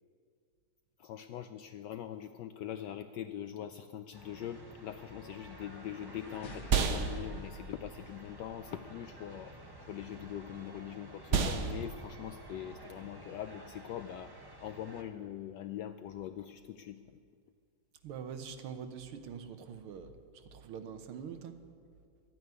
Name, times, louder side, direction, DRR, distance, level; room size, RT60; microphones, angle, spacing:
voice 1, 1.0-9.5 9.9-14.3 14.6-17.0, left 10 dB, 75° left, 9 dB, 1.0 m, -42 dB
sound 1, 4.1-15.0, right 1 dB, 15° right, 0.8 m, -52 dB
sound 2, 5.3-15.0, right 5 dB, 55° right, 0.8 m, -37 dB
sound 3, 5.6-8.7, left 2 dB, 45° left, 1.6 m, -49 dB
voice 2, 18.0-21.6, right 7 dB, 85° right, 8 dB, 1.8 m, -44 dB
12.5 x 9.3 x 9.6 m, 2.2 s
omnidirectional pair, 2.3 m